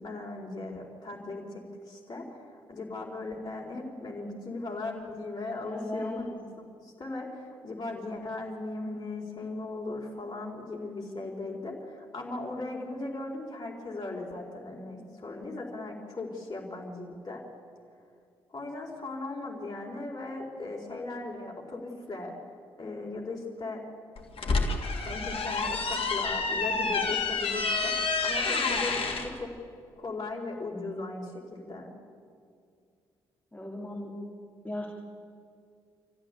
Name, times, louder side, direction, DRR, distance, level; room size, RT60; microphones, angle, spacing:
voice 1, 0.0-6.4 6.7-17.4 18.5-22.3 22.8-23.8 25.1-28.0 28.2-29.5 30.0-31.9, left 2 dB, 35° left, -1 dB, 4.5 m, -38 dB
voice 2, 5.7-6.2 33.5-34.1 34.6-34.9, left 1 dB, 15° left, -2 dB, 4.1 m, -36 dB
sound 1, 24.2-29.3, left 4 dB, 50° left, 2.9 m, -29 dB
27.5 x 15.0 x 8.5 m, 2.3 s
hypercardioid pair, 45°, 12 cm